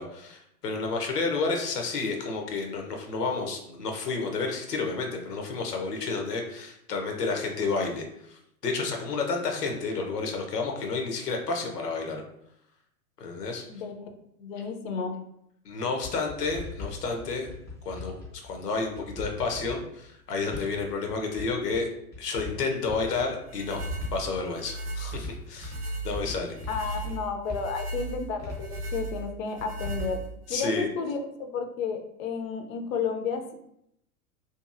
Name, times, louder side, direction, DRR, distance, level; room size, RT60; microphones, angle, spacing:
voice 1, 0.0-12.2 13.2-13.6 15.6-17.5 17.8-18.1 18.4-21.9 22.2-23.8 24.1-25.7 26.0-26.6 30.5-30.9, left 4 dB, 85° left, 2 dB, 0.8 m, -30 dB
voice 2, 13.7-14.1 14.4-15.2 26.7-30.2 30.5-33.5, left 5 dB, 60° left, 5 dB, 0.6 m, -32 dB
sound 1, 16.0-18.5 18.8-20.1 20.4-21.5 21.7-22.5 22.8-23.4 23.8-24.7 25.1-25.9 26.1-27.1 27.5-28.8 29.6-30.1, left 3 dB, 5° left, 0.7 m, -39 dB
sound 2, 23.5-30.5, right 2 dB, 20° right, 0.4 m, -36 dB
2.8 x 2.5 x 2.4 m, 0.77 s
hypercardioid pair, 115°, 46 cm